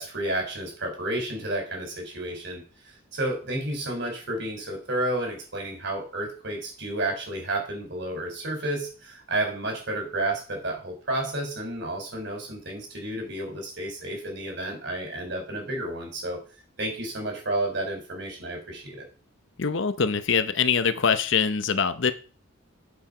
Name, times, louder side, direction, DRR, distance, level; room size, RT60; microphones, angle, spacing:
voice 1, 0.0-2.6 3.1-16.4 16.8-19.0, right 1 dB, 55° right, 2 dB, 4.1 m, -31 dB
voice 2, 19.6-22.1, left 6 dB, 60° left, 12 dB, 0.8 m, -23 dB
8.3 x 7.3 x 4.9 m, 0.36 s
head